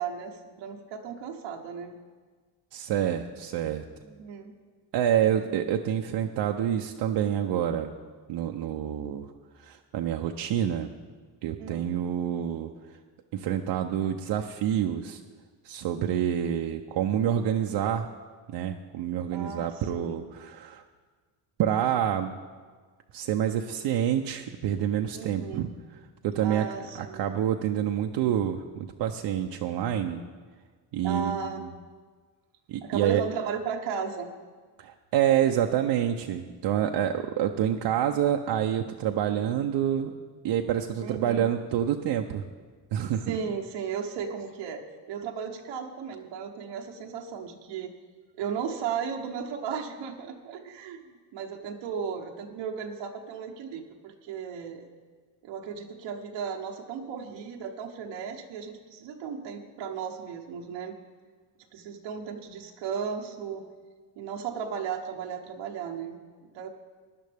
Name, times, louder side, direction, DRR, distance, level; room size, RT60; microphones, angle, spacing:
voice 1, 0.0-2.0 4.0-4.5 5.2-5.5 11.6-11.9 19.3-20.3 25.1-25.7 26.4-27.2 31.0-31.6 32.8-34.3 41.0-41.5 43.3-47.9 48.4-54.9 55.4-60.9 61.7-63.6 64.2-66.7, right 6 dB, 90° right, 2 dB, 1.0 m, -35 dB
voice 2, 2.7-3.8 4.9-7.9 8.3-9.3 9.6-10.9 11.4-12.7 13.3-15.2 15.6-18.1 18.5-20.8 21.6-22.3 23.1-25.7 26.2-26.7 27.0-30.2 30.9-31.7 32.7-33.2 34.8-40.1 40.4-42.4 42.9-43.4, right 10 dB, 70° right, 3 dB, 0.7 m, -27 dB
16.0 x 10.5 x 3.5 m, 1.5 s
cardioid pair, 95°, 43 cm